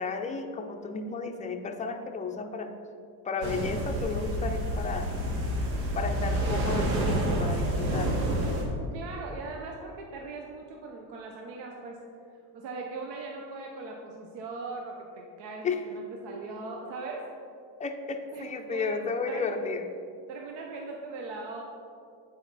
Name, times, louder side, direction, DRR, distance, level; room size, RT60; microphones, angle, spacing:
voice 1, 0.0-2.7 3.2-5.1 5.9-8.3 15.6-15.8 17.8-19.9, left 4 dB, 15° left, 4 dB, 0.5 m, -33 dB
sound 1, 3.4-8.6, right 1 dB, 80° right, 1.3 m, -28 dB
voice 2, 8.8-12.0 12.5-17.3 18.3-19.6 20.3-21.6, right 3 dB, 65° right, 1 dB, 0.8 m, -40 dB
8.1 x 4.2 x 4.0 m, 2.4 s
supercardioid pair, 105°, 46 cm